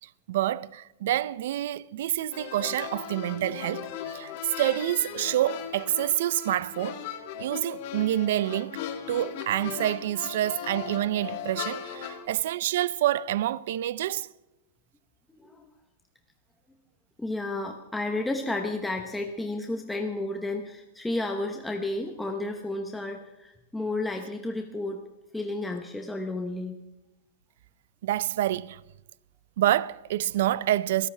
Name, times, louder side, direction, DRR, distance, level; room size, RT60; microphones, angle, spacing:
voice 1, 0.3-7.0 7.4-8.8 9.1-14.3 28.0-28.8 29.6-31.1, right 13 dB, 55° right, 0.6 m, -27 dB
sound 1, 2.3-12.3, left 9 dB, 45° left, 2.3 m, -38 dB
voice 2, 17.2-25.0 25.3-26.8, left 2 dB, 5° left, 1.0 m, -32 dB
23.5 x 18.0 x 3.4 m
supercardioid pair, 175°, 0 cm